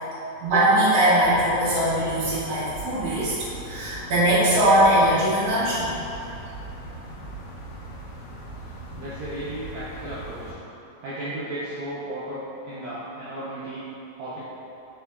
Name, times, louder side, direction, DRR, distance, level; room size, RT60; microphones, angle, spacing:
voice 1, 0.4-3.4 3.6-5.9, right 1 dB, 45° right, -12 dB, 1.2 m, -20 dB
sound 1, 1.2-10.5, right 1 dB, 75° left, 1.9 m, -39 dB
voice 2, 9.0-10.6 11.0-12.4 12.6-13.8 14.2-14.4, right 1 dB, 85° right, -10 dB, 1.4 m, -34 dB
4.5 x 3.8 x 2.2 m, 2.8 s
omnidirectional pair, 3.6 m